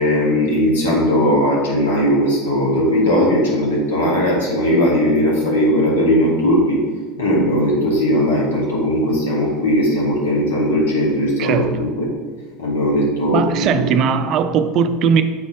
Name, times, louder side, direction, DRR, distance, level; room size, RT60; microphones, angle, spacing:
voice 1, 0.0-6.8 7.2-12.1 12.6-13.8, equal, 70° left, -4 dB, 1.7 m, -18 dB
voice 2, 11.4-11.8 13.3-15.2, right 6 dB, 45° right, 10 dB, 0.4 m, -18 dB
7.0 x 4.1 x 3.7 m, 1.5 s
figure-of-eight pair, 75°, 0 cm